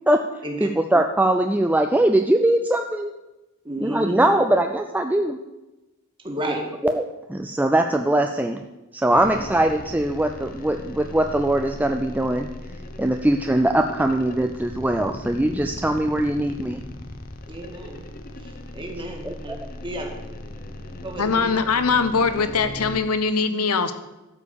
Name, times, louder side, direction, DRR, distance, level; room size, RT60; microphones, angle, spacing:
voice 1, 0.6-3.1 3.8-5.4 6.8-7.0 7.3-8.6 8.9-12.5 13.0-16.8 19.2-19.6, right 1 dB, 5° right, 5 dB, 0.4 m, -21 dB
voice 2, 3.6-4.3 6.2-6.6 9.1-9.3 17.5-18.0 18.4-19.5 19.8-20.1 21.0-21.4, right 1 dB, 20° right, 1 dB, 1.9 m, -32 dB
sound 1, 9.1-23.0, left 1 dB, 40° left, 0.9 m, -38 dB
voice 3, 21.2-23.9, left 4 dB, 85° left, 10 dB, 0.9 m, -22 dB
13.0 x 5.0 x 7.0 m, 1.0 s
head